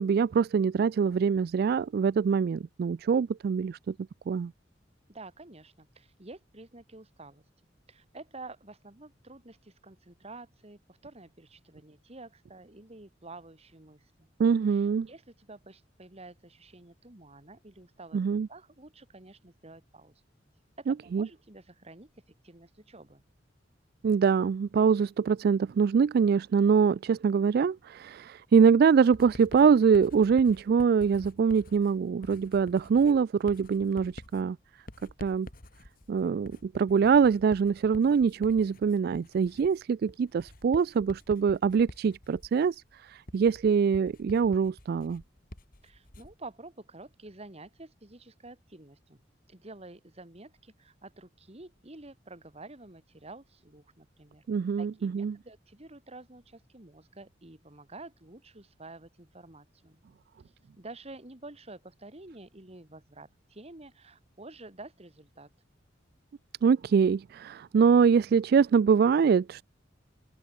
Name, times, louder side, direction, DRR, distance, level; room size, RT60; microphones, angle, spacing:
voice 1, 0.0-3.9 4.3-4.5 14.4-15.1 18.1-18.5 20.9-21.3 24.0-34.6 35.2-35.5 36.1-45.2 54.5-55.4 66.6-69.6, right 6 dB, 55° right, 0.3 m, -24 dB
voice 2, 5.1-7.4 7.9-14.3 14.7-20.1 20.8-22.1 22.4-23.2 45.8-49.2 49.5-54.4 54.8-60.0 60.8-65.5, right 2 dB, 35° right, 2.2 m, -49 dB
Writing, 29.1-46.5, left 1 dB, 50° left, 2.8 m, -49 dB
open air
head